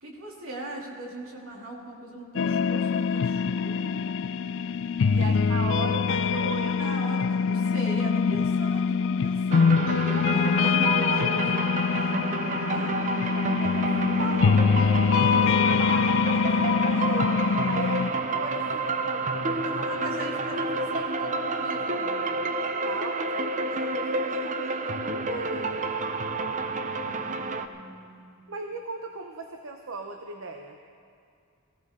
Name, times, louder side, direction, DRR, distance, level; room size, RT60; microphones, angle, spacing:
voice 1, 0.0-4.0 5.1-5.4 6.6-9.8 10.3-11.4 11.8-12.9 19.8-22.4 27.0-28.4, right 1 dB, 85° right, -2 dB, 2.6 m, -40 dB
sound 1, 2.4-18.1, left 6 dB, 65° left, 0.4 m, -24 dB
voice 2, 5.1-6.8 9.8-10.4 10.8-11.7 13.3-14.7 15.0-20.0 22.8-25.7 28.5-30.8, right 3 dB, 70° right, 4 dB, 0.8 m, -37 dB
sound 2, 9.5-27.7, right 3 dB, 40° right, 0.6 m, -29 dB
18.5 x 16.0 x 3.7 m, 2.3 s
head